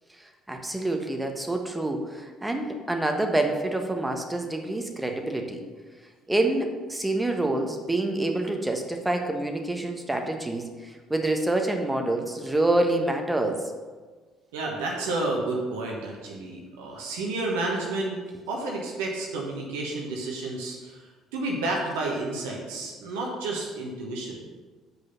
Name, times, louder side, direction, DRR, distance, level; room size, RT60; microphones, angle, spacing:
voice 1, 0.5-5.6 6.3-13.6, right 2 dB, 10° right, 3 dB, 1.3 m, -27 dB
voice 2, 14.5-18.2 18.5-21.0 21.3-24.5, right 2 dB, 70° right, -2 dB, 1.2 m, -30 dB
7.9 x 5.3 x 5.8 m, 1.4 s
figure-of-eight pair, 50°, 0 cm